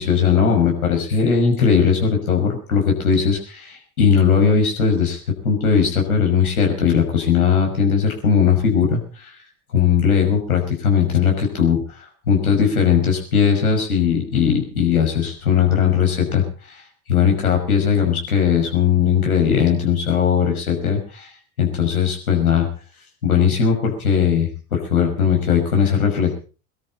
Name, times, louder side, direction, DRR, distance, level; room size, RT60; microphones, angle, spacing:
voice 1, 0.0-9.3 9.7-11.8 12.3-16.8 17.1-21.3 21.6-22.7 23.2-26.3, left 7 dB, 85° left, 2 dB, 6.1 m, -18 dB
24.0 x 13.0 x 4.3 m, 0.36 s
hypercardioid pair, 80°, 42 cm